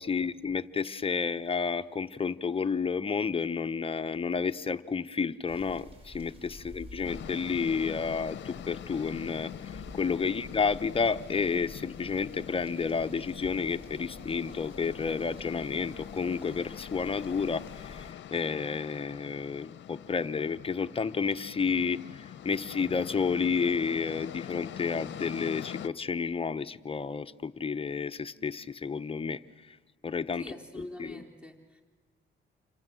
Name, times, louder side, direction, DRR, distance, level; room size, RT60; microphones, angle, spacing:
voice 1, 0.0-29.4 30.0-31.2, left 5 dB, 30° left, 10 dB, 0.9 m, -31 dB
sound 1, 5.5-18.1, left 1 dB, 30° right, 5.2 m, -50 dB
sound 2, 7.0-25.9, left 10 dB, 65° left, 0.9 m, -44 dB
voice 2, 30.4-31.8, left 1 dB, 5° right, 3 dB, 3.5 m, -45 dB
28.5 x 25.0 x 7.8 m, 1.5 s
cardioid pair, 90°, 20 cm